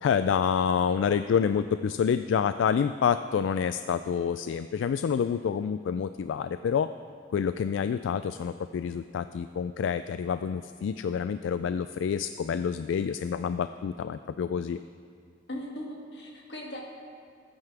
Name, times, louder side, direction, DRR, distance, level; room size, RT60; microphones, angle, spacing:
voice 1, 0.0-6.9 7.3-14.8, left 7 dB, 85° left, 11 dB, 0.3 m, -28 dB
voice 2, 15.5-16.8, left 1 dB, 65° left, -2 dB, 2.2 m, -38 dB
19.5 x 9.3 x 3.4 m, 2.2 s
head